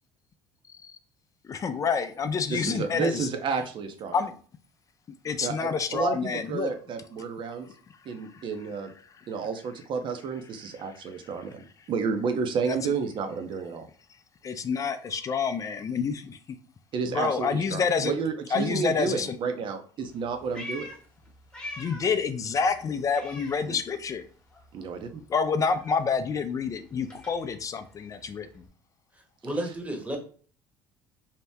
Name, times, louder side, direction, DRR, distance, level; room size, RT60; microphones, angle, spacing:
voice 1, 0.7-1.0 1.4-3.3 4.1-4.3 5.2-6.7 8.3-8.4 9.1-9.3 10.9-11.3 12.7-12.9 14.4-16.6 17.1-18.1 18.5-19.3 21.8-24.3 25.3-28.7, left 5 dB, 35° left, 9 dB, 0.4 m, -28 dB
voice 2, 2.5-4.1 5.4-7.7 8.1-8.9 9.3-13.9 16.9-20.9 23.7-23.8 24.7-25.2, right 5 dB, 50° right, 7 dB, 0.6 m, -31 dB
Meow, 20.1-22.2 22.5-24.2 24.5-28.7, left 1 dB, 10° left, 1.0 m, -45 dB
voice 3, 29.4-30.2, right 1 dB, 15° right, 3 dB, 0.9 m, -31 dB
2.8 x 2.1 x 3.4 m, 0.43 s
supercardioid pair, 90°, 10 cm